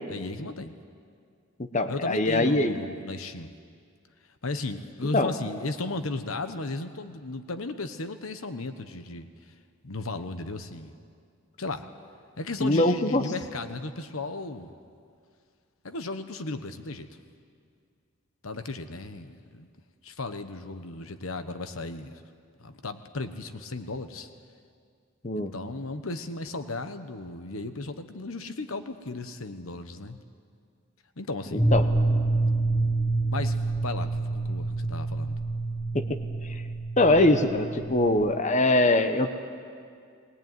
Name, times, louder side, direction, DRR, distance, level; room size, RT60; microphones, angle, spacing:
voice 1, 0.1-0.8 1.9-3.5 4.4-9.5 9.8-10.9 11.6-11.9 12.4-14.8 15.8-17.1 18.4-19.7 20.0-22.2 22.6-24.3 25.4-30.2 31.2-31.7 33.3-35.4, left 2 dB, 85° left, 9 dB, 1.2 m, -35 dB
voice 2, 1.7-2.8 5.1-5.3 12.6-13.2 25.2-25.5 31.7-31.8 35.9-36.2 37.0-39.3, left 2 dB, 35° left, 8 dB, 1.0 m, -22 dB
sound 1, 31.6-38.4, right 2 dB, 10° left, 1.0 m, -27 dB
21.0 x 19.5 x 9.3 m, 2.2 s
head